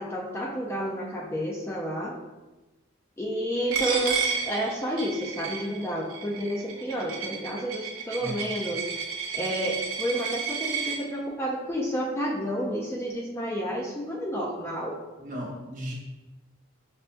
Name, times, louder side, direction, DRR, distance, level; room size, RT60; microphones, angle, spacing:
voice 1, 0.0-2.2 3.2-8.9 9.3-15.0, equal, 15° left, -2 dB, 0.3 m, -30 dB
Coin (dropping), 3.7-11.0, right 6 dB, 90° right, 0.6 m, -32 dB
voice 2, 15.2-15.9, equal, 40° right, -4 dB, 0.9 m, -35 dB
5.5 x 2.2 x 2.5 m, 1.1 s
head